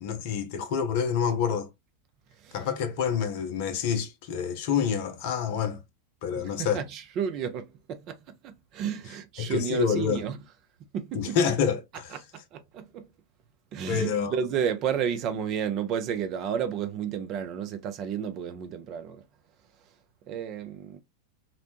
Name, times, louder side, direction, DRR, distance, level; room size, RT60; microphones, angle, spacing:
voice 1, 0.0-1.7 2.5-5.8 6.2-6.8 9.4-10.2 11.1-12.2 13.9-14.4, left 7 dB, 50° left, 0.5 m, -27 dB
voice 2, 6.4-8.2 8.4-10.4 10.9-11.4 12.5-13.1 13.7-19.2 20.3-21.0, right 8 dB, 35° right, 0.4 m, -32 dB
2.6 x 2.0 x 2.8 m
figure-of-eight pair, 90°, 0 cm